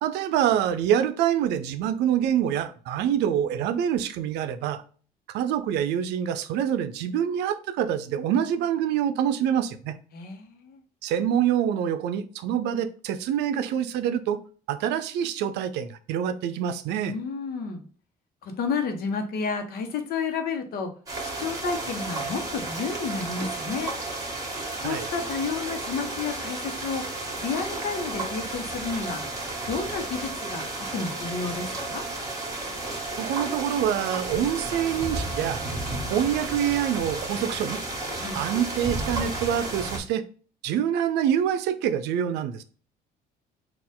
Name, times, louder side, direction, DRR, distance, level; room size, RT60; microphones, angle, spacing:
voice 1, 0.0-4.8 5.3-10.0 11.0-14.4 14.7-17.1 24.8-25.1 33.2-35.6 36.1-37.8 38.3-40.2 40.6-42.6, right 9 dB, 85° right, 10 dB, 0.5 m, -26 dB
voice 2, 10.1-10.8 17.1-17.9 18.4-20.9 21.2-23.9 24.8-27.1 27.4-29.2 29.7-32.0 38.2-38.4, left 5 dB, 65° left, 5 dB, 1.0 m, -31 dB
sound 1, 21.1-40.0, right 2 dB, 20° right, 1.8 m, -33 dB
4.2 x 2.5 x 3.7 m, 0.41 s
cardioid pair, 110°, 17 cm